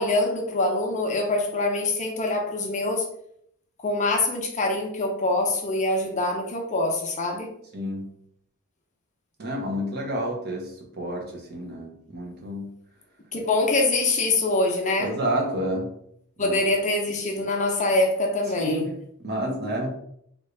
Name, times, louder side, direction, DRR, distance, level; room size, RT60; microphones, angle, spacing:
voice 1, 0.0-3.1 3.8-7.5 13.3-15.1 16.4-18.9, left 2 dB, 35° left, 1 dB, 0.6 m, -24 dB
voice 2, 7.7-8.1 9.4-12.7 15.0-15.9 16.4-16.6 18.6-18.9 19.2-19.9, equal, 50° right, 0 dB, 0.9 m, -29 dB
3.5 x 2.5 x 3.2 m, 0.69 s
head